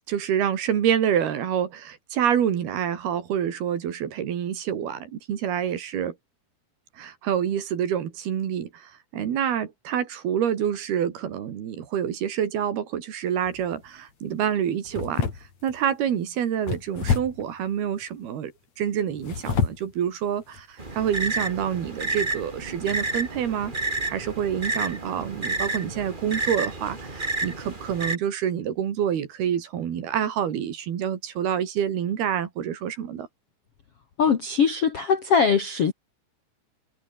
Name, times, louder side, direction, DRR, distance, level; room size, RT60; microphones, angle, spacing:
voice 1, 0.1-6.1 7.0-15.3 15.6-23.7 24.1-33.3, right 9 dB, 60° right, 4.1 m, -27 dB
sound 1, 13.5-13.8 14.9-15.8 16.7-17.5 19.1-19.9 20.5-20.6 21.1-21.3, left 6 dB, 40° left, 4.0 m, -28 dB
sound 2, 20.8-28.1, right 2 dB, 15° right, 1.9 m, -30 dB
voice 2, 34.2-35.9, left 6 dB, 55° left, 1.6 m, -21 dB
omnidirectional pair, 5.2 m